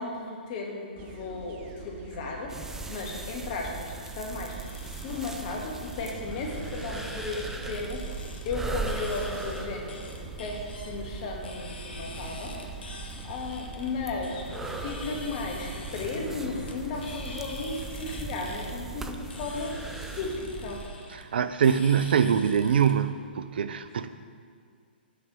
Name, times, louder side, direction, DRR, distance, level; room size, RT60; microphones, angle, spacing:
voice 1, 0.0-4.6 4.9-8.1 8.5-19.8 20.1-20.8, left 3 dB, 45° left, 0 dB, 1.8 m, -35 dB
sound 1, 1.0-20.9, right 6 dB, 30° right, 0.8 m, -45 dB
sound 2, 2.5-20.9, right 3 dB, 5° right, 0.4 m, -40 dB
sound 3, 3.6-22.9, left 2 dB, 70° left, 1.3 m, -45 dB
voice 2, 21.1-24.1, right 7 dB, 65° right, 12 dB, 0.5 m, -24 dB
6.6 x 6.0 x 6.2 m, 2.1 s
hypercardioid pair, 125°, 6 cm